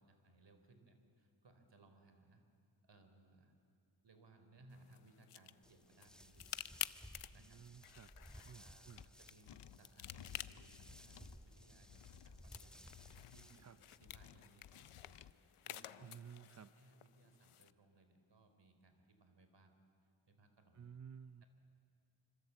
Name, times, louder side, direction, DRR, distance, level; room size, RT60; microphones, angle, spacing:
voice 1, 0.0-2.4 2.8-3.5 4.0-6.5 7.3-7.6 8.1-8.9 9.2-12.8 13.3-13.7 14.0-19.7 20.2-20.9 21.4-21.5, right 2 dB, 55° right, 7 dB, 3.9 m, -66 dB
sound 1, 4.7-17.7, left 12 dB, 90° left, 0.8 m, -52 dB
sound 2, 5.6-14.0, equal, ahead, 1.3 m, -59 dB
voice 2, 7.4-8.1 8.4-9.0 13.6-13.8 16.0-16.7 20.7-21.4, right 7 dB, 35° right, 12 dB, 0.6 m, -55 dB
sound 3, 9.0-9.1 9.5-11.4 11.9-12.4 12.9-13.5 14.0-15.3, left 10 dB, 60° left, 0.7 m, -57 dB
26.5 x 25.0 x 8.2 m, 2.3 s
cardioid pair, 85°, 49 cm